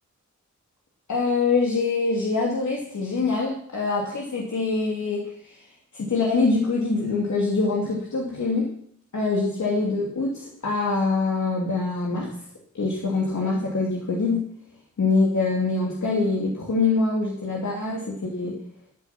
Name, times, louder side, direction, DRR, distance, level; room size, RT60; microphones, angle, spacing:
voice 1, 1.1-5.7 5.9-8.7 9.1-12.3 12.7-14.4 15.0-18.5, left 3 dB, 65° left, -2 dB, 2.7 m, -24 dB
15.0 x 9.1 x 6.0 m, 0.64 s
wide cardioid pair, 105°, 31 cm